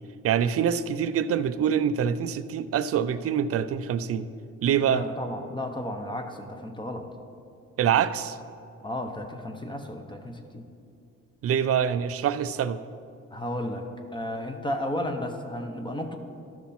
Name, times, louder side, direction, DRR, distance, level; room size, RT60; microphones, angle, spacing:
voice 1, 0.2-4.3 4.6-5.0 7.8-8.4 11.4-12.8, right 8 dB, 50° right, 13 dB, 0.5 m, -25 dB
voice 2, 4.8-7.1 8.8-10.6 13.3-13.8 14.1-16.2, left 1 dB, 15° left, 4 dB, 0.8 m, -33 dB
12.5 x 6.0 x 4.2 m, 2.4 s
cardioid pair, 90°, 30 cm